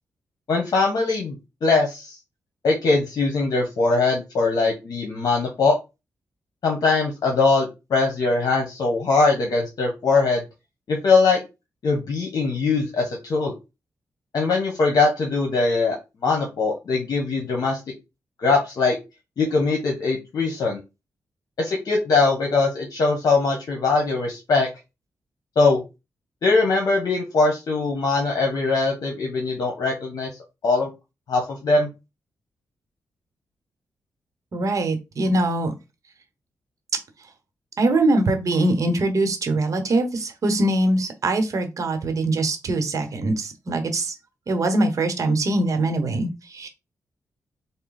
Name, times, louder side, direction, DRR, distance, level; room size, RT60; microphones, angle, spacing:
voice 1, 0.5-2.2 2.6-5.7 6.6-10.4 10.9-11.4 11.8-13.5 14.3-16.0 16.2-17.8 18.4-19.0 19.4-20.8 21.6-24.7 25.6-25.8 26.4-30.3 30.6-30.9 31.3-31.9, left 3 dB, 70° left, 1 dB, 1.1 m, -21 dB
voice 2, 34.5-35.7 37.8-44.1 44.5-46.7, right 2 dB, 55° right, 6 dB, 1.0 m, -22 dB
4.0 x 2.2 x 4.0 m, 0.26 s
cardioid pair, 80°, 7 cm